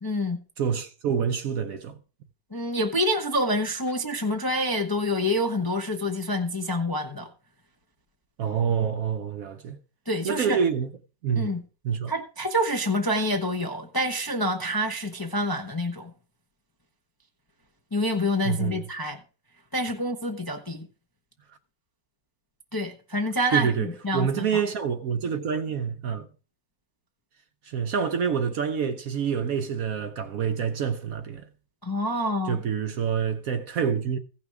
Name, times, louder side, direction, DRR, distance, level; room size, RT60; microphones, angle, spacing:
voice 1, 0.0-0.4 2.5-7.3 10.1-10.6 11.4-11.6 12.1-16.1 17.9-19.2 19.7-20.9 22.7-24.5 31.8-32.6, equal, 20° left, 0.6 m, -27 dB
voice 2, 0.6-2.0 8.4-9.8 10.2-10.9 11.2-11.5 11.8-12.1 18.4-18.8 21.5-21.6 23.5-26.3 27.6-31.5 32.4-34.2, right 7 dB, 65° right, 1.0 m, -27 dB
15.5 x 5.9 x 4.7 m
omnidirectional pair, 1.9 m